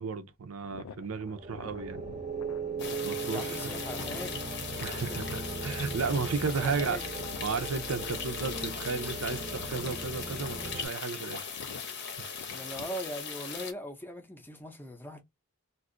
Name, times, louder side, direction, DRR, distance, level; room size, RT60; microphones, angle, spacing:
voice 1, 0.0-2.0 3.0-3.7 4.8-7.0 7.4-11.5 12.2-12.4, right 5 dB, 75° right, 0.6 m, -34 dB
sound 1, 0.6-12.9, left 5 dB, 85° left, 0.4 m, -49 dB
sound 2, 1.0-10.9, right 4 dB, 30° right, 0.6 m, -38 dB
sound 3, 2.8-13.7, left 6 dB, 55° left, 0.8 m, -39 dB
voice 2, 3.3-4.4 4.8-5.2 6.4-7.0 12.5-15.2, equal, 10° left, 0.6 m, -40 dB
2.6 x 2.4 x 3.7 m
head